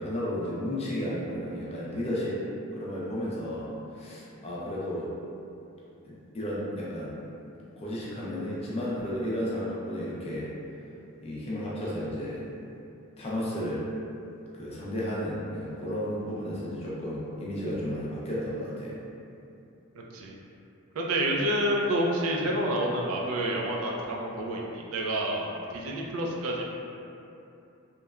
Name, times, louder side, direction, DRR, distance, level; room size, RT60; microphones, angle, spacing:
voice 1, 0.0-2.4 2.7-5.1 6.0-7.1 7.8-10.5 11.2-12.4 13.2-13.9 14.5-19.0, equal, 30° left, -7 dB, 0.4 m, -33 dB
voice 2, 20.9-25.4 25.7-26.6, right 1 dB, 75° right, -2 dB, 0.4 m, -28 dB
2.9 x 2.1 x 2.3 m, 2.7 s
head